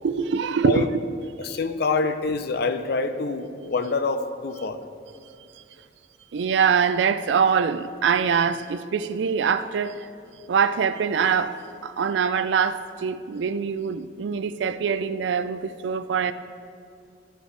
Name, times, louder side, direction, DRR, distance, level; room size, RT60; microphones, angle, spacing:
voice 1, 0.0-0.9 1.5-1.6 6.3-10.1 10.5-16.3, right 6 dB, 80° right, 0.4 m, -24 dB
voice 2, 1.4-4.8, left 4 dB, 60° left, 0.5 m, -26 dB
12.0 x 8.0 x 3.3 m
head